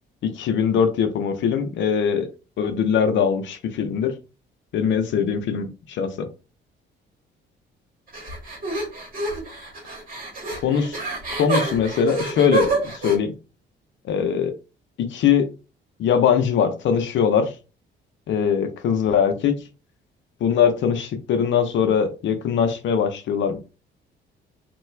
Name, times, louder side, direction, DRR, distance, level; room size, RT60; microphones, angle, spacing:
voice 1, 0.2-2.3 2.6-4.1 4.7-6.3 10.6-11.0 11.4-13.3 14.0-14.5 15.0-15.5 16.0-17.5 18.3-19.6 20.4-23.6, left 7 dB, 70° left, 7 dB, 0.6 m, -21 dB
sound 1, 8.1-13.2, right 3 dB, 45° right, 1.5 m, -28 dB
3.1 x 2.3 x 3.2 m, 0.32 s
cardioid pair, 90°, 20 cm